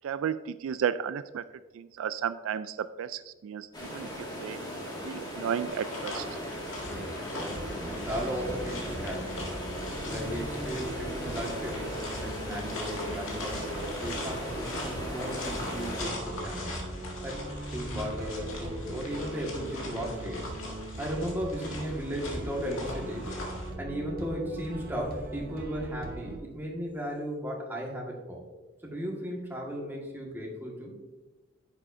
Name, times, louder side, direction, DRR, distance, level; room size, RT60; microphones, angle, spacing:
voice 1, 0.0-1.4 1.8-3.7 3.9-4.1 4.4-4.6 5.1-6.3, right 8 dB, 80° right, 13 dB, 0.3 m, -33 dB
sound 1, 3.7-16.1, equal, 20° left, 1.9 m, -38 dB
sound 2, 5.7-23.7, left 1 dB, 80° left, 1.8 m, -41 dB
voice 2, 6.8-9.5 10.0-16.7 17.2-17.5 17.7-20.5 21.0-23.5 23.8-28.4 28.8-30.9, equal, 10° right, -2 dB, 1.6 m, -36 dB
sound 3, 7.4-26.4, right 1 dB, 50° right, 1.0 m, -40 dB
9.8 x 7.2 x 2.6 m, 1.2 s
head